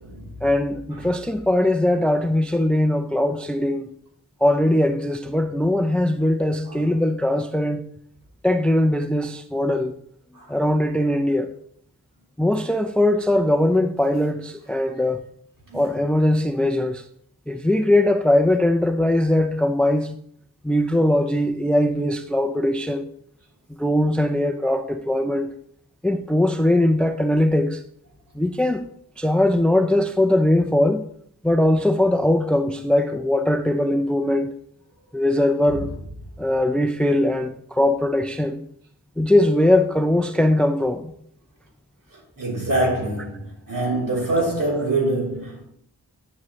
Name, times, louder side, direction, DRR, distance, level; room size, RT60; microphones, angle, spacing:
voice 1, 0.4-3.9 4.4-7.8 8.4-9.9 10.5-11.5 12.4-15.2 15.7-17.0 17.5-20.1 20.6-23.1 23.8-25.5 26.0-27.8 28.3-28.8 29.2-31.0 31.4-34.5 35.1-35.9 36.4-38.6 39.2-41.1, left 1 dB, 5° left, 0.5 m, -20 dB
voice 2, 42.4-45.7, right 2 dB, 55° right, 3.7 m, -25 dB
9.7 x 7.3 x 3.2 m
wide cardioid pair, 100°, 38 cm